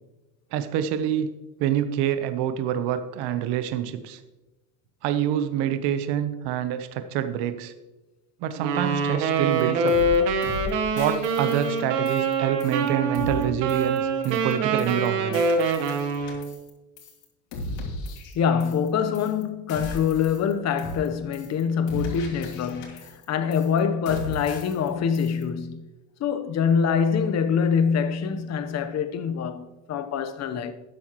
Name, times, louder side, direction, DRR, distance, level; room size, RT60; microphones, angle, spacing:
voice 1, 0.5-1.3 1.6-4.2 5.0-7.7 8.4-10.0 10.9-15.4, right 10 dB, 55° right, 1.0 m, -26 dB
Wind instrument woodwind instrument, 8.6-16.5, right 3 dB, 90° right, 1.4 m, -25 dB
sound 1, 9.6-9.7 9.9-10.2 10.4-10.7 11.0-12.3 12.6-12.9 13.1-13.4 13.7-14.0 14.2-14.5 14.8-15.1 15.3-16.7 17.0-17.2 17.5-18.9 19.1-19.4 19.7-20.5 20.8-21.1 21.3-21.6 21.9-23.2 23.5-23.8 24.1-24.9 25.1-25.4, left 2 dB, 65° left, 3.2 m, -37 dB
voice 2, 18.3-25.9 26.2-30.7, left 7 dB, 35° left, 0.9 m, -25 dB
13.0 x 9.4 x 3.0 m
supercardioid pair, 120°, 47 cm